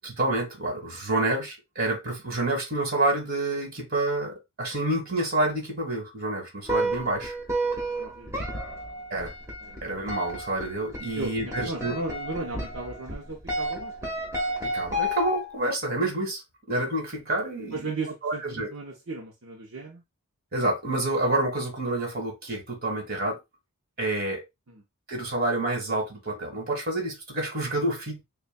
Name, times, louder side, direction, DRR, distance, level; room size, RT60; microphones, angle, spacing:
voice 1, 0.0-7.3 9.1-9.3 9.8-12.0 14.6-16.4 16.7-17.9 18.2-18.7 20.5-23.4 24.0-24.4 25.1-28.2, right 2 dB, 45° right, 1.8 m, -28 dB
sound 1, 6.7-15.6, equal, 15° right, 1.1 m, -32 dB
voice 2, 7.7-8.8 9.6-9.8 11.1-14.2 17.7-20.0, right 3 dB, 65° right, 0.8 m, -36 dB
6.7 x 2.3 x 2.2 m
head